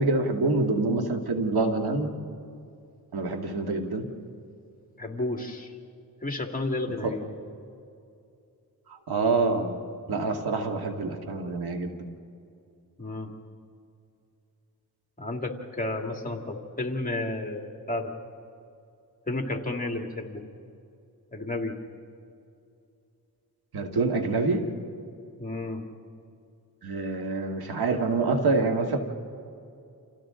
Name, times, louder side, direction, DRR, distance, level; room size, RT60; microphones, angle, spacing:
voice 1, 0.0-2.1 3.1-4.0 7.0-7.1 8.9-9.8 10.1-12.0 23.7-24.6 26.8-29.0, right 3 dB, 85° right, 4 dB, 2.0 m, -26 dB
voice 2, 5.0-5.7 6.2-7.2 13.0-13.3 15.2-18.1 19.3-20.4 21.3-21.7 25.4-25.8, left 2 dB, 20° left, 3 dB, 2.2 m, -32 dB
29.5 x 28.0 x 3.8 m, 2.6 s
wide cardioid pair, 100°, 37 cm